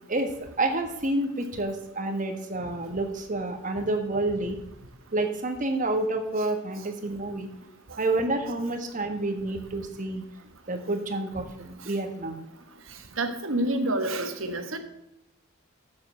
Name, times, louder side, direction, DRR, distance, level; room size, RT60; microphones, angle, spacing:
voice 1, 0.6-4.6 5.1-7.5 8.0-10.2 10.7-12.4, right 2 dB, 40° right, 4 dB, 1.5 m, -29 dB
voice 2, 13.2-14.8, right 1 dB, 75° right, 7 dB, 1.4 m, -28 dB
7.6 x 7.4 x 6.4 m, 0.87 s
head